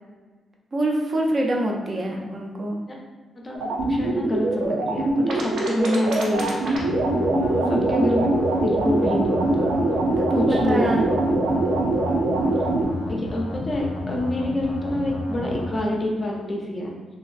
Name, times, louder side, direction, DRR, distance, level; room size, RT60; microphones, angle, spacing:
voice 1, 0.7-2.8 7.1-7.9 10.2-11.1, right 1 dB, 30° right, -1 dB, 0.4 m, -26 dB
voice 2, 3.4-6.8 7.7-8.3 8.6-9.7 10.3-11.2 13.1-17.0, left 1 dB, 25° left, -1 dB, 0.5 m, -27 dB
sound 1, 3.5-12.8, right 2 dB, 85° right, 0.5 m, -23 dB
sound 2, 6.7-15.8, left 2 dB, 80° left, 0.5 m, -32 dB
3.0 x 2.4 x 2.4 m, 1.4 s
wide cardioid pair, 145°, 0 cm